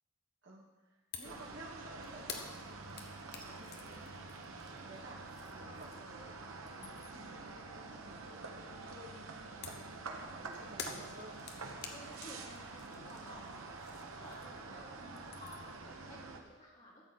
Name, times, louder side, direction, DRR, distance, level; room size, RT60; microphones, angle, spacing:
voice 1, 0.4-3.1 3.5-3.7 4.6-5.2 5.5-9.4 10.1-11.4 14.7-14.9, right 1 dB, 60° right, -2 dB, 2.1 m, -54 dB
sound 1, 1.1-1.4 1.7-6.2 6.5-7.3 9.6-14.7 15.0-15.8, left 6 dB, 50° left, 1.0 m, -50 dB
sound 2, 1.2-16.4, right 3 dB, 90° right, 1.1 m, -47 dB
voice 2, 3.4-4.1 11.9-13.5 14.0-17.0, left 1 dB, 35° left, -5 dB, 2.7 m, -55 dB
13.5 x 8.0 x 4.1 m, 1.2 s
head